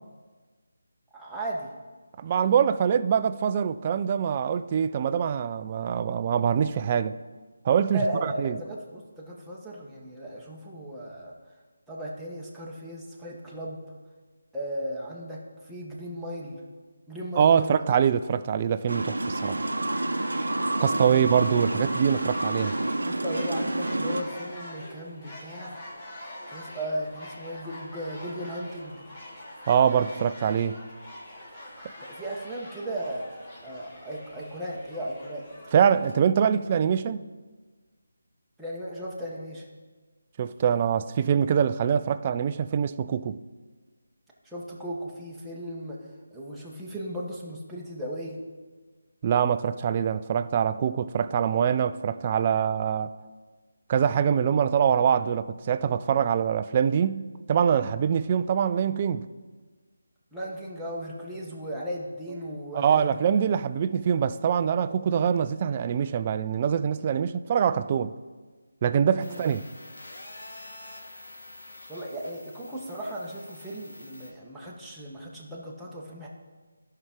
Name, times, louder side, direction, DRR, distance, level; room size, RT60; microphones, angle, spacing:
voice 1, 1.1-1.7 7.9-11.3 11.9-13.8 14.5-16.6 17.1-17.8 20.8-21.2 23.0-25.8 26.5-29.0 32.0-33.3 33.6-35.5 38.6-39.7 44.4-46.0 46.3-48.4 60.3-63.2 69.2-69.4 71.9-76.3, equal, ahead, 1.1 m, -36 dB
voice 2, 2.2-7.1 7.7-8.6 17.4-19.6 20.8-22.8 29.7-30.8 35.7-37.2 40.4-43.4 49.2-53.1 53.9-57.2 57.5-59.3 62.7-68.1 68.8-69.7, right 8 dB, 30° right, 0.3 m, -24 dB
sound 1, 18.9-24.2, right 2 dB, 75° right, 0.7 m, -28 dB
sound 2, 19.0-36.1, left 1 dB, 30° left, 2.1 m, -44 dB
sound 3, 69.2-74.3, left 2 dB, 65° left, 1.8 m, -46 dB
13.0 x 5.6 x 3.7 m
figure-of-eight pair, 155°, 0 cm